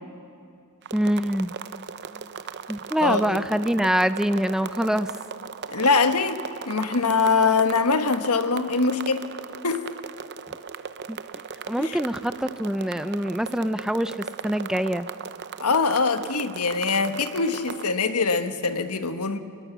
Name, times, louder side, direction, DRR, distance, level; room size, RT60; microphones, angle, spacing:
sound 1, 0.8-17.9, right 6 dB, 50° right, 0.7 m, -38 dB
voice 1, 0.9-1.5 2.7-5.2 11.1-11.2 11.7-15.1, equal, 5° right, 12 dB, 0.5 m, -25 dB
voice 2, 3.0-3.4 5.7-6.4 6.7-9.3 9.6-9.8 11.8-12.0 15.6-19.4, left 4 dB, 85° left, 9 dB, 1.4 m, -23 dB
27.5 x 20.5 x 7.0 m, 2.5 s
head